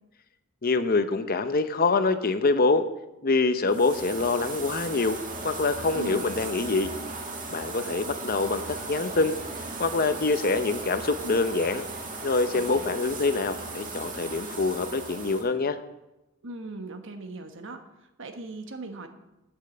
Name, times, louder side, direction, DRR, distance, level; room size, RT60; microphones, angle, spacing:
voice 1, 0.6-2.8 3.2-5.2 5.4-6.9 7.5-9.4 9.8-11.9 12.2-15.8, left 3 dB, 40° left, 10 dB, 0.7 m, -25 dB
sound 1, 3.7-15.5, right 3 dB, 40° right, 1.8 m, -37 dB
voice 2, 5.9-6.3 12.5-12.9 16.4-19.1, right 3 dB, 60° right, 6 dB, 1.3 m, -39 dB
9.0 x 8.3 x 7.8 m, 0.95 s
head